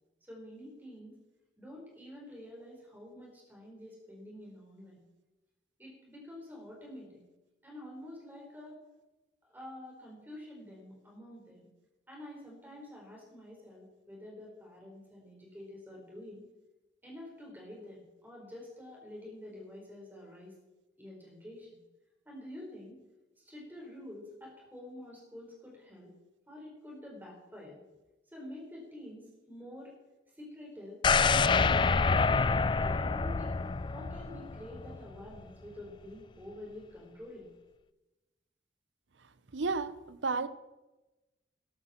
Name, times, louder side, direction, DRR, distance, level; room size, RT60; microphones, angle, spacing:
voice 1, 0.2-1.2 1.6-5.0 5.8-7.2 7.6-8.8 9.4-11.7 12.1-16.4 17.0-20.5 21.0-21.8 22.2-23.0 23.4-26.1 26.5-27.8 28.3-29.9 30.4-32.2 32.8-37.5, left 1 dB, 10° right, -2 dB, 4.6 m, -48 dB
sound 1, 31.0-35.0 35.4-35.5, left 4 dB, 25° left, 0.3 m, -27 dB
voice 2, 39.5-40.5, right 4 dB, 90° right, 14 dB, 0.7 m, -32 dB
13.5 x 12.5 x 4.4 m, 1.1 s
head